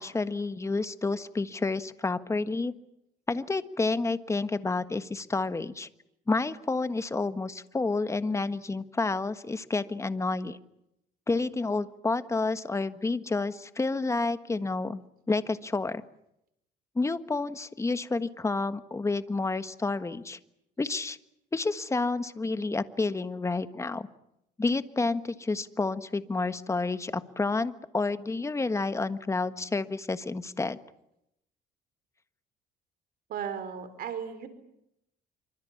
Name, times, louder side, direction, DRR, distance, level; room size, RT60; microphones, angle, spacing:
voice 1, 0.0-2.7 3.3-5.9 6.3-10.6 11.3-15.0 15.3-16.0 16.9-20.4 20.8-21.2 21.5-24.1 24.6-30.8, left 3 dB, 15° left, 11 dB, 1.5 m, -29 dB
voice 2, 33.3-34.5, right 8 dB, 60° right, 11 dB, 3.9 m, -35 dB
26.5 x 25.0 x 7.3 m, 0.80 s
cardioid pair, 110°, 17 cm